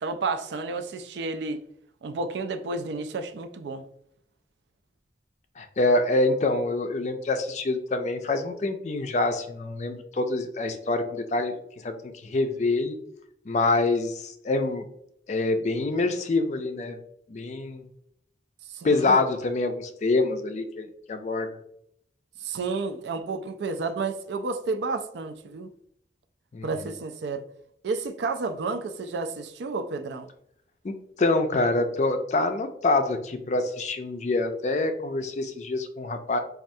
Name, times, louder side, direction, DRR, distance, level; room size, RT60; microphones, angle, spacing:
voice 1, 0.0-1.6 2.0-3.8 18.7-19.2 22.4-25.7 26.6-27.4 27.8-30.3, right 3 dB, 80° right, 0.4 m, -31 dB
voice 2, 5.6-11.5 11.8-11.9 12.2-13.0 13.5-14.8 15.3-17.0 17.3-17.9 18.8-21.5 26.5-26.7 30.8-36.4, left 2 dB, 40° left, 0.4 m, -26 dB
4.3 x 2.3 x 2.6 m
head